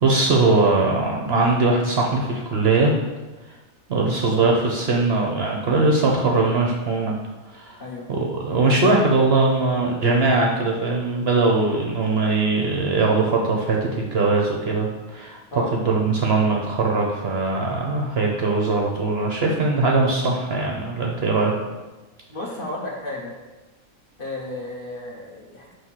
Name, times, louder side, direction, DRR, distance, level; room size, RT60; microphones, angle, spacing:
voice 1, 0.0-2.9 3.9-7.2 7.5-7.8 8.1-15.4 15.8-21.5, right 3 dB, 55° right, -1 dB, 0.8 m, -21 dB
voice 2, 22.3-23.3 24.2-25.7, left 2 dB, 45° left, -3 dB, 1.0 m, -33 dB
6.3 x 2.9 x 5.7 m, 1.1 s
omnidirectional pair, 1.5 m